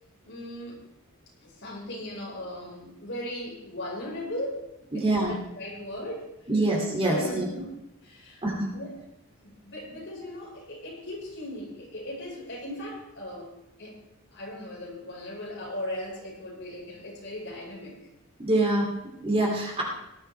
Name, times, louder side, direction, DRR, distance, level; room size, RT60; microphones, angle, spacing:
voice 1, 0.2-0.8 1.4-4.7 4.9-6.5 7.0-7.7 8.0-8.4 8.7-8.9 9.4-13.5 13.8-14.0 14.3-18.0, left 1 dB, 55° left, -3 dB, 5.1 m, -38 dB
voice 2, 4.9-5.3 6.5-7.4 8.4-8.7 18.4-19.8, right 2 dB, 25° right, -1 dB, 2.8 m, -25 dB
18.5 x 11.5 x 3.4 m, 0.87 s
head